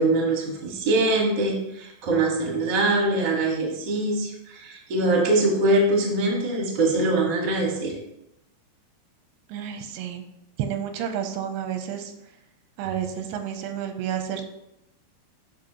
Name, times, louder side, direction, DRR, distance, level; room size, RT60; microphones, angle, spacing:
voice 1, 0.0-7.9, right 2 dB, 60° right, -1 dB, 1.1 m, -23 dB
voice 2, 9.5-10.3 10.6-12.1 12.8-14.5, right 9 dB, 90° right, 6 dB, 2.7 m, -30 dB
9.0 x 5.5 x 2.9 m, 0.84 s
omnidirectional pair, 4.7 m